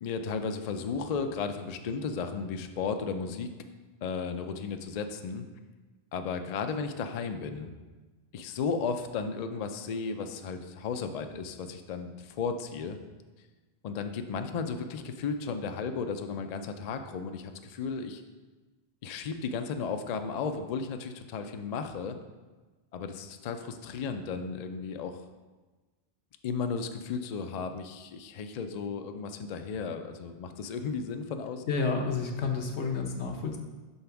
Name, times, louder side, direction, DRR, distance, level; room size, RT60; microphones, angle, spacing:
voice 1, 0.0-3.5 4.0-5.5 6.1-7.7 8.3-13.0 13.8-18.2 19.0-22.2 22.9-25.2 26.4-31.6, left 5 dB, 55° left, 7 dB, 0.4 m, -34 dB
voice 2, 31.7-33.6, left 4 dB, 85° left, 2 dB, 1.1 m, -30 dB
5.6 x 3.4 x 5.7 m, 1.3 s
omnidirectional pair, 1.1 m